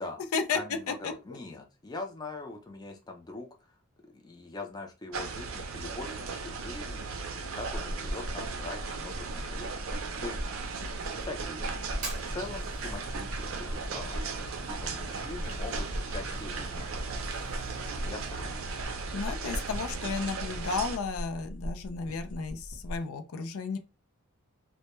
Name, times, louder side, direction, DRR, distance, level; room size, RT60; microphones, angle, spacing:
voice 1, 0.5-3.8 4.1-9.7 10.2-10.4 11.1-14.3 14.6-16.9 18.0-18.7 19.4-19.6, left 2 dB, 20° left, 0.4 m, -42 dB
sound 1, 5.1-21.0, right 4 dB, 70° right, 0.5 m, -37 dB
sound 2, 7.6-23.0, equal, 60° left, 0.8 m, -39 dB
Fire, 11.9-18.9, right 2 dB, 35° right, 0.8 m, -47 dB
voice 2, 19.1-23.8, left 5 dB, 80° left, 0.4 m, -33 dB
2.1 x 2.1 x 2.9 m
head